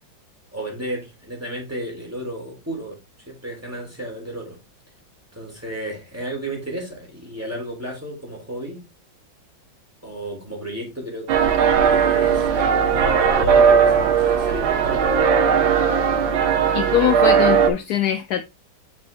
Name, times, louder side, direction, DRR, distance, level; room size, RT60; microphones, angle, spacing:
voice 1, 0.5-3.0 3.3-4.6 5.3-8.8 10.0-15.1, right 1 dB, 5° right, 3.2 m, -33 dB
sound 1, 11.3-17.7, right 7 dB, 75° right, 1.7 m, -18 dB
voice 2, 16.7-18.4, left 12 dB, 75° left, 0.9 m, -22 dB
7.3 x 4.7 x 3.4 m
omnidirectional pair, 2.2 m